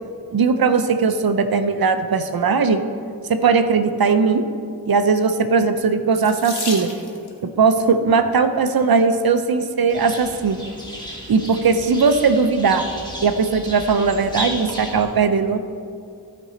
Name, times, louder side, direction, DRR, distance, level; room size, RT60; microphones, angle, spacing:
voice 1, 0.3-2.8 3.3-4.4 4.9-6.9 7.4-10.6 11.3-12.8 13.2-15.6, right 5 dB, 70° right, 9 dB, 0.7 m, -18 dB
Water tap faucet / Sink (filling or washing), 6.1-7.4 8.4-8.8 9.5-9.6 9.9-10.1, left 3 dB, 85° left, 1.4 m, -32 dB
sound 1, 9.9-15.0, equal, 10° left, 2.2 m, -34 dB
16.0 x 5.4 x 3.9 m, 2.3 s
cardioid pair, 55°, 38 cm